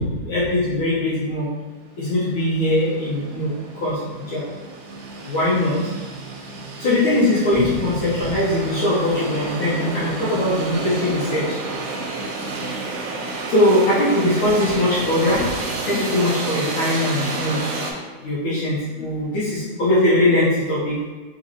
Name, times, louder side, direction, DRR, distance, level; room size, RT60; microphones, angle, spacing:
voice 1, 0.0-1.5 2.0-4.4 5.3-5.8 6.8-11.4 13.5-15.5 15.9-17.6 18.2-20.9, left 1 dB, 85° left, -9 dB, 1.1 m, -21 dB
sound 1, 1.9-2.0 2.3-17.9, right 3 dB, 90° right, 2.1 m, -30 dB
4.0 x 4.0 x 2.7 m, 1.3 s
omnidirectional pair, 3.4 m